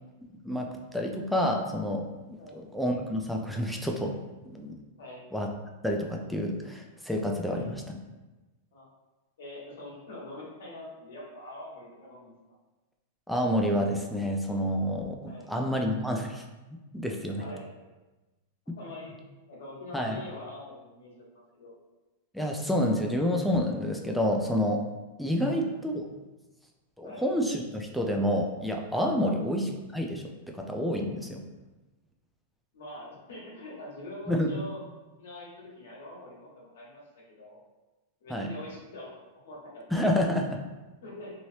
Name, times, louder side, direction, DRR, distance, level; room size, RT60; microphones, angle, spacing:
voice 1, 0.4-2.1 2.5-4.1 4.5-4.7 5.3-5.5 5.8-8.0 13.3-16.4 16.9-17.4 19.9-20.2 22.3-24.8 25.2-25.9 27.0-31.4 34.3-34.5 38.3-38.5 39.9-40.6, equal, ahead, 1 dB, 0.3 m, -29 dB
voice 2, 2.4-2.7 5.0-5.2 7.4-7.7 8.7-8.9 9.4-12.3 15.2-15.5 17.3-17.6 18.8-19.1 19.5-21.7 25.4-25.6 27.0-27.2 29.2-29.4 32.7-34.8 35.2-37.6 38.2-39.1 39.4-40.0 41.0-41.3, left 1 dB, 75° left, -5 dB, 1.4 m, -44 dB
3.1 x 2.8 x 2.7 m, 1.1 s
supercardioid pair, 160°, 0 cm